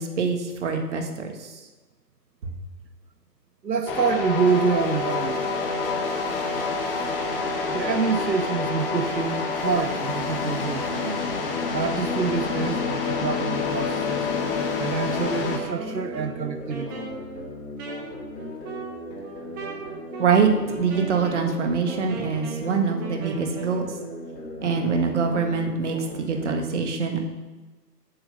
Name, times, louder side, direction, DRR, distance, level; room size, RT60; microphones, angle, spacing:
voice 1, 0.0-1.6 20.2-23.9 24.6-27.2, right 5 dB, 45° right, 4 dB, 1.7 m, -24 dB
voice 2, 3.6-5.5 6.3-6.5 6.9-7.2 7.7-11.2 11.7-14.3 14.8-17.1, right 5 dB, 90° right, 9 dB, 0.8 m, -27 dB
sound 1, 3.9-15.6, left 4 dB, 35° left, 1.6 m, -27 dB
sound 2, 10.6-26.6, left 1 dB, 75° left, 3.6 m, -38 dB
Wind instrument woodwind instrument, 15.2-23.8, right 3 dB, 15° right, 0.8 m, -39 dB
7.8 x 7.8 x 7.0 m, 1.2 s
figure-of-eight pair, 135°, 49 cm